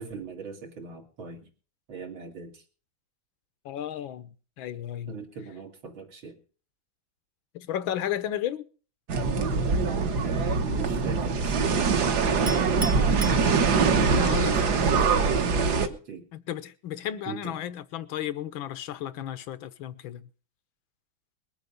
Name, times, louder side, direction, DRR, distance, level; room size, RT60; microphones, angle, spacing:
voice 1, 0.0-1.5 1.9-2.6 5.1-6.4 10.6-11.8 12.2-12.6 14.2-16.3 17.3-17.6, right 5 dB, 85° right, 3.3 m, -41 dB
voice 2, 3.6-5.2 7.5-8.6 14.2-14.5 14.9-15.0 16.3-20.3, left 11 dB, 85° left, 1.7 m, -33 dB
sound 1, 9.1-15.9, right 5 dB, 60° right, 1.5 m, -23 dB
Chink clink, 12.5-14.1, right 2 dB, 25° right, 0.4 m, -37 dB
21.0 x 8.2 x 5.2 m
omnidirectional pair, 2.1 m